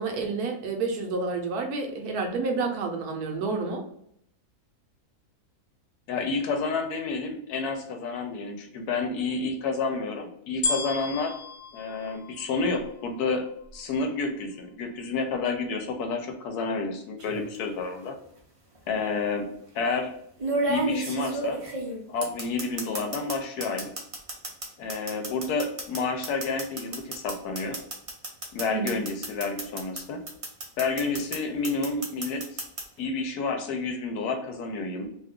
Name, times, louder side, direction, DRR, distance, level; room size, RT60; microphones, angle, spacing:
voice 1, 0.0-3.8 28.7-29.0, right 4 dB, 75° right, 3 dB, 1.1 m, -29 dB
voice 2, 6.1-11.3 11.7-13.5 13.7-18.2 18.9-19.5 19.7-20.1 20.7-21.6 22.1-23.9 24.8-27.8 28.5-30.2 30.8-32.4 33.0-35.1, left 4 dB, 80° left, 5 dB, 1.2 m, -30 dB
sound 1, 10.6-13.0 13.7-13.8, left 3 dB, 55° left, 0.7 m, -33 dB
sound 2, 17.2-17.5 18.7-18.8 20.4-23.3 23.6-30.0 30.3-31.4 31.6-32.8, right 2 dB, 45° right, 0.4 m, -31 dB
2.9 x 2.3 x 3.5 m, 0.72 s
omnidirectional pair, 1.7 m